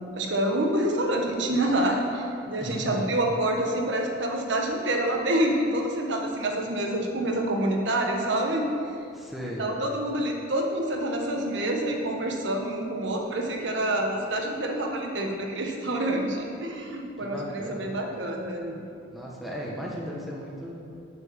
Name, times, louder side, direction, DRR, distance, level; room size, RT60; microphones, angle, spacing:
voice 1, 0.0-8.7 9.6-18.8, right 1 dB, 70° right, 1 dB, 1.3 m, -27 dB
voice 2, 2.6-3.1 9.1-9.7 17.2-17.9 19.1-21.0, equal, ahead, -4 dB, 1.3 m, -36 dB
7.3 x 6.8 x 7.3 m, 2.6 s
head